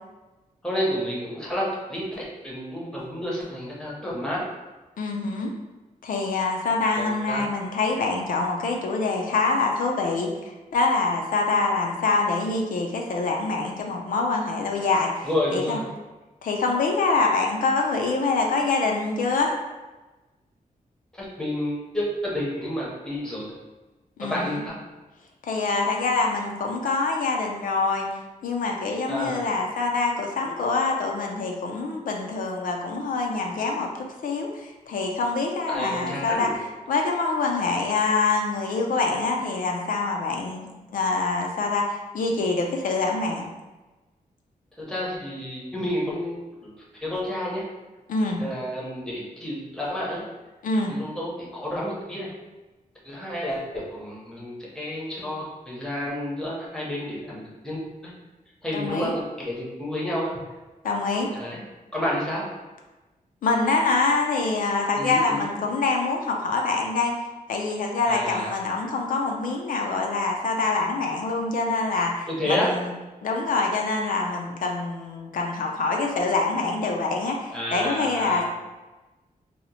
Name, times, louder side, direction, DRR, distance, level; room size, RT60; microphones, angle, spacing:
voice 1, 0.6-4.4 7.0-7.5 15.2-15.9 21.1-23.5 24.2-24.8 29.1-29.4 35.7-36.5 44.8-46.3 46.6-46.8 47.0-47.6 48.4-50.2 50.9-52.3 53.0-58.1 58.6-60.4 61.3-61.6 61.9-62.5 65.0-65.4 68.1-68.5 72.3-72.7 77.5-78.4, left 1 dB, 5° left, -5 dB, 0.7 m, -30 dB
voice 2, 5.0-5.5 6.0-15.8 16.4-19.5 24.2-24.6 25.4-28.1 28.4-36.5 36.9-43.5 48.1-48.4 50.6-51.0 58.7-59.2 60.8-61.3 63.4-67.1 67.5-72.9 73.2-78.4, left 3 dB, 70° left, 1 dB, 0.4 m, -25 dB
2.7 x 2.0 x 4.0 m, 1.1 s
wide cardioid pair, 180°, 15 cm